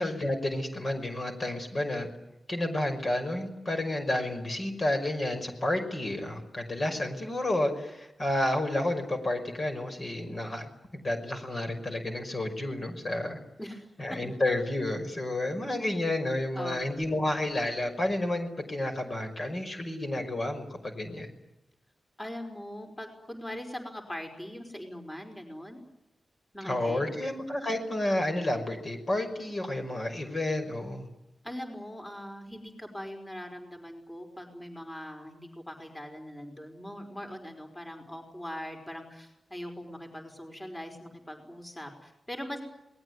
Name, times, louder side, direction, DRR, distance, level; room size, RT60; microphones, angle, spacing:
voice 1, 0.0-2.1 2.5-13.4 14.0-21.3 26.6-31.1, left 1 dB, 40° left, 5 dB, 5.6 m, -30 dB
voice 2, 13.6-14.2 16.5-16.9 22.2-25.8 26.5-27.1 31.4-42.6, equal, 15° left, 3 dB, 5.2 m, -41 dB
27.5 x 20.5 x 9.7 m, 0.93 s
wide cardioid pair, 90°, 0 cm